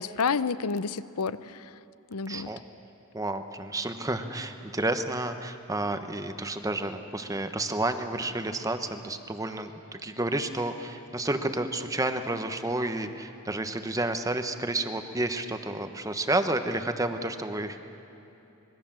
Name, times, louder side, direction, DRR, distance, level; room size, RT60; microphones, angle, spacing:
voice 1, 0.0-1.7 2.1-2.5, left 5 dB, 90° left, 15 dB, 0.7 m, -30 dB
voice 2, 2.3-2.6 3.1-17.8, right 2 dB, 15° right, 8 dB, 1.1 m, -30 dB
26.0 x 21.0 x 7.5 m, 3.0 s
head